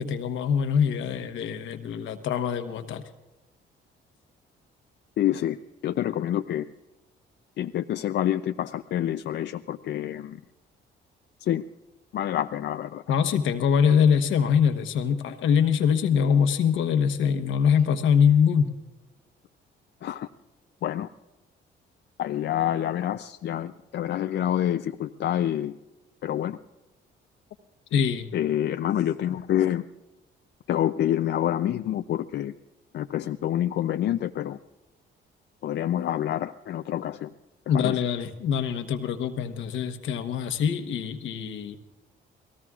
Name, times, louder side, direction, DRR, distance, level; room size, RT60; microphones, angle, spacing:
voice 1, 0.0-3.0 13.1-18.7 27.9-28.3 37.7-41.8, left 7 dB, 80° left, 8 dB, 1.1 m, -23 dB
voice 2, 5.2-5.6 5.8-6.7 7.6-10.4 11.4-11.6 12.1-13.0 20.0-20.3 20.8-21.1 22.2-25.8 26.2-26.6 28.3-29.8 30.7-32.5 32.9-34.6 35.6-37.3 37.7-38.0, left 11 dB, 60° left, 8 dB, 0.5 m, -27 dB
29.5 x 18.0 x 2.4 m, 1.0 s
cardioid pair, 90°, 20 cm